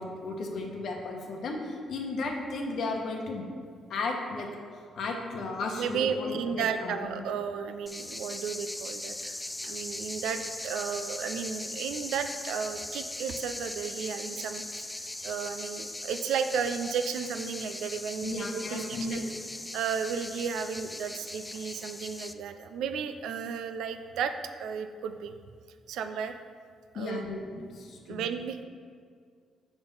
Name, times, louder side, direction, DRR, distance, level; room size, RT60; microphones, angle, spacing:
voice 1, 0.0-3.4 3.9-4.5 4.9-7.2 12.2-12.3 18.2-19.2 26.9-28.2, left 3 dB, 65° left, 1 dB, 1.0 m, -34 dB
voice 2, 5.8-9.4 9.6-19.2 19.7-24.3 24.6-25.3 25.9-26.4 26.9-27.2 28.1-28.6, right 6 dB, 85° right, 8 dB, 0.4 m, -33 dB
sound 1, 7.9-22.3, left 1 dB, 10° left, 0.3 m, -39 dB
6.9 x 3.6 x 5.5 m, 2.1 s
cardioid pair, 85°, 0 cm